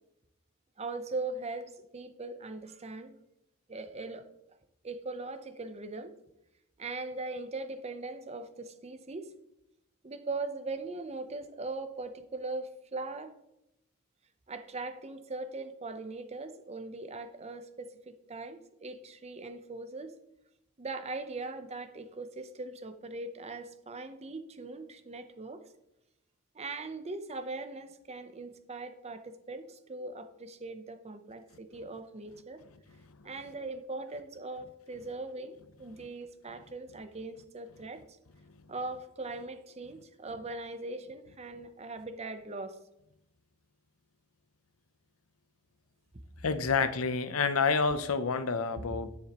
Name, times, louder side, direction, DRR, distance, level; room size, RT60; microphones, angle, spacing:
voice 1, 0.8-3.2 3.7-4.3 4.8-6.1 6.8-9.3 10.0-13.3 14.5-20.1 20.8-25.6 26.5-32.6 33.2-38.2 38.7-42.8, right 3 dB, 30° right, 9 dB, 0.7 m, -40 dB
voice 2, 46.4-49.2, left 5 dB, 85° left, 12 dB, 0.7 m, -28 dB
10.5 x 9.6 x 3.0 m, 0.85 s
head